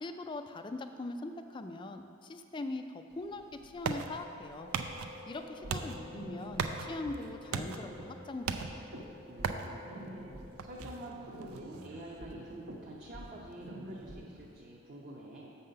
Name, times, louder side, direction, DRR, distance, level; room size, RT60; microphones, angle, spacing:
voice 1, 0.0-4.7 5.3-8.7, left 2 dB, 20° left, 7 dB, 0.3 m, -41 dB
sound 1, 3.1-14.6, right 5 dB, 90° right, 0.5 m, -41 dB
sound 2, 4.6-11.1, left 3 dB, 65° left, 0.9 m, -53 dB
sound 3, 5.5-14.5, right 1 dB, 70° right, 0.8 m, -48 dB
voice 2, 9.3-10.3 10.6-15.6, right 1 dB, 40° right, -4 dB, 0.7 m, -47 dB
6.5 x 5.5 x 6.7 m, 2.7 s
head